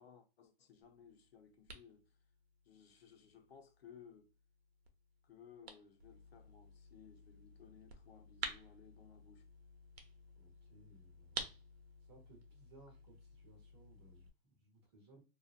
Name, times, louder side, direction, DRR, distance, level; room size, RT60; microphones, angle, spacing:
voice 1, 0.0-2.1 2.6-4.3 5.2-9.5, left 7 dB, 75° left, 0.9 m, -60 dB
sound 1, 0.8-14.3, right 4 dB, 85° right, 0.8 m, -52 dB
voice 2, 10.3-11.5 12.0-15.2, right 2 dB, 25° right, 0.9 m, -64 dB
2.7 x 2.4 x 2.4 m
hypercardioid pair, 180°, 30 cm